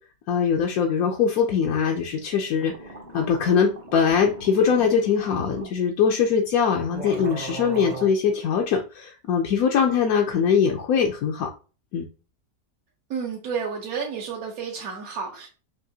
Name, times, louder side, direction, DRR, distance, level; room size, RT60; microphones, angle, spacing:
voice 1, 0.3-2.7 3.1-11.5 11.9-12.0, left 6 dB, 70° left, 1 dB, 0.9 m, -22 dB
sound 1, 2.2-2.3 2.5-5.7 6.5-6.6 6.9-8.1, right 2 dB, 35° right, 0.7 m, -38 dB
voice 2, 13.1-15.5, right 6 dB, 60° right, -2 dB, 1.2 m, -31 dB
6.3 x 2.5 x 2.7 m, 0.35 s
omnidirectional pair, 1.8 m